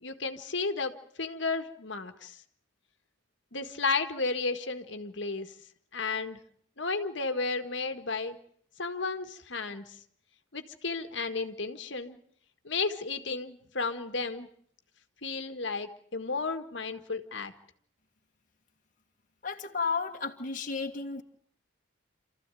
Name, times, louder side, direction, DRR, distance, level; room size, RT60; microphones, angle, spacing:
voice 1, 0.0-2.4 3.5-5.5 5.9-6.4 6.8-8.4 8.8-10.0 10.5-12.2 12.7-14.5 15.2-17.5, left 4 dB, 70° left, 7 dB, 1.8 m, -33 dB
voice 2, 19.4-21.2, left 4 dB, 45° left, 2 dB, 1.7 m, -33 dB
28.5 x 14.5 x 9.1 m, 0.63 s
head